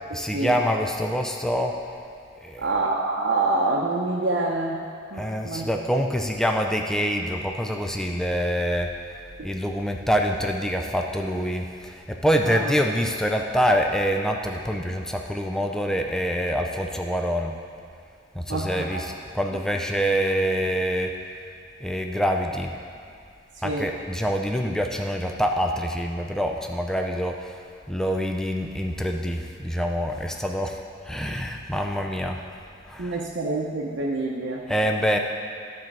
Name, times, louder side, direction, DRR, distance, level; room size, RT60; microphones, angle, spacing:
voice 1, 0.1-1.7 2.4-2.7 5.2-8.9 9.4-17.5 18.3-21.1 21.8-22.7 23.6-27.6 27.9-32.4 32.9-33.3 34.7-35.2, equal, 5° left, 3 dB, 0.4 m, -26 dB
voice 2, 2.6-4.8 5.1-5.7 12.4-12.7 18.5-19.0 23.6-23.9 33.0-34.6, right 2 dB, 65° right, -3 dB, 0.8 m, -26 dB
12.0 x 4.5 x 6.1 m, 2.3 s
head